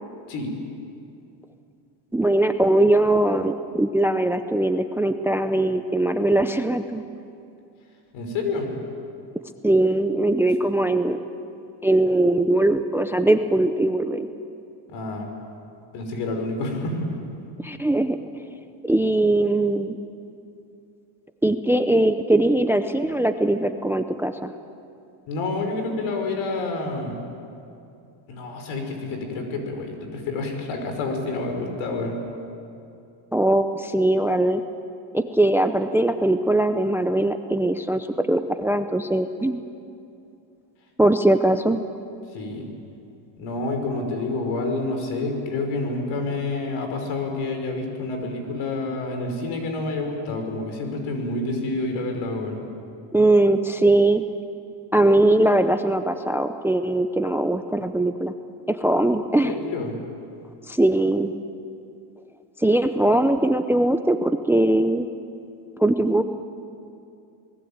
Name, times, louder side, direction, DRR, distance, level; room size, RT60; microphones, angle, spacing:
voice 1, 2.1-7.0 9.6-11.2 11.8-14.3 17.6-18.2 18.8-20.0 21.4-24.5 33.3-34.6 35.1-39.6 41.0-41.8 53.1-54.2 54.9-58.3 58.7-59.6 60.7-61.3 62.6-65.1 65.8-66.2, right 1 dB, 5° right, 9 dB, 0.5 m, -20 dB
voice 2, 8.1-8.7 14.9-15.3 15.9-17.1 25.3-27.2 28.3-32.2 42.3-42.7 43.4-52.6 59.4-60.0, left 2 dB, 75° left, 4 dB, 5.4 m, -28 dB
28.0 x 20.0 x 8.8 m, 2.6 s
cardioid pair, 150°, 48 cm